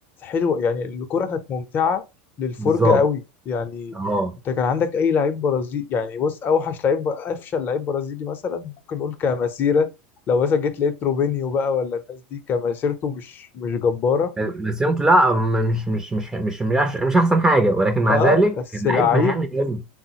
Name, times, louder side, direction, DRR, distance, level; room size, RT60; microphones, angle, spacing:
voice 1, 0.2-2.0 2.4-3.9 4.5-9.9 10.3-14.3 18.1-18.5 18.8-19.4, left 6 dB, 35° left, 0.6 m, -23 dB
voice 2, 2.6-3.0 3.9-4.4 14.4-18.5 18.8-19.8, right 1 dB, 10° right, 0.4 m, -20 dB
3.5 x 2.0 x 2.8 m
hypercardioid pair, 100°, 6 cm